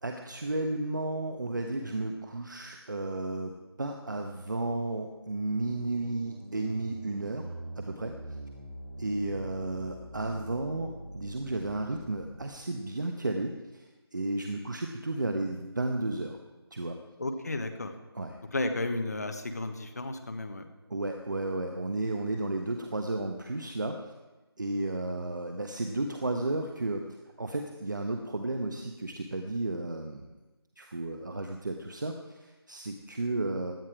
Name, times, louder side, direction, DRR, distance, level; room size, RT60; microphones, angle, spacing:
voice 1, 0.0-8.1 9.0-16.4 16.7-17.0 18.1-18.4 20.9-24.1 24.6-27.0 27.4-30.3 30.8-33.7, right 2 dB, 45° right, 4 dB, 1.2 m, -33 dB
sound 1, 3.8-12.5, right 1 dB, 70° right, 6.6 m, -45 dB
voice 2, 17.2-17.9 18.5-20.7, left 2 dB, 40° left, 6 dB, 1.3 m, -33 dB
17.0 x 12.0 x 4.9 m, 1.1 s
figure-of-eight pair, 180°, 14 cm